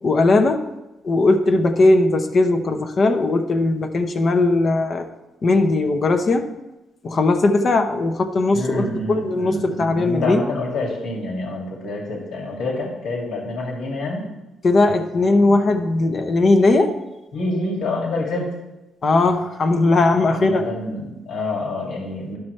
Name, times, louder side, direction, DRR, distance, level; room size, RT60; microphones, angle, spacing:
voice 1, 0.0-0.7 1.0-5.1 5.4-6.5 7.0-10.4 14.6-17.0 19.0-20.7, left 2 dB, 45° left, 5 dB, 0.9 m, -18 dB
voice 2, 8.4-14.3 17.3-18.5 20.3-22.4, left 2 dB, 80° left, -2 dB, 2.3 m, -27 dB
11.5 x 5.9 x 3.3 m, 1.0 s
cardioid pair, 90°, 0 cm